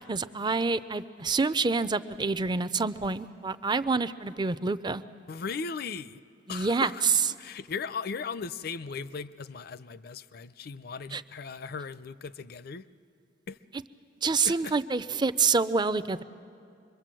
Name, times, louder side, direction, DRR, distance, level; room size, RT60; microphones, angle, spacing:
voice 1, 0.1-5.0 6.5-6.9 11.1-11.2 14.2-16.2, right 4 dB, 25° right, 14 dB, 0.5 m, -27 dB
voice 2, 5.3-6.2 6.5-7.1 7.4-12.9 13.5-13.6 14.4-14.7, left 5 dB, 60° left, 15 dB, 0.5 m, -37 dB
25.5 x 22.5 x 7.6 m, 2.5 s
head